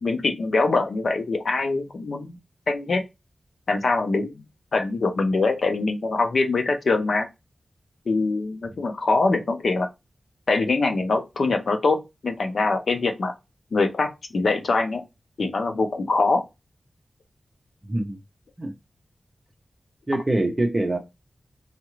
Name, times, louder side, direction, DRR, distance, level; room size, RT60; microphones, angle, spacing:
voice 1, 0.0-2.4 2.7-3.0 3.7-4.4 4.7-7.3 8.1-9.9 10.5-13.3 13.7-15.0 15.4-16.4, left 3 dB, 70° left, 0.7 m, -23 dB
voice 2, 17.9-18.2 18.6-18.7 20.1-21.0, right 2 dB, 25° right, 0.7 m, -24 dB
4.3 x 2.5 x 3.0 m
wide cardioid pair, 120°, 0 cm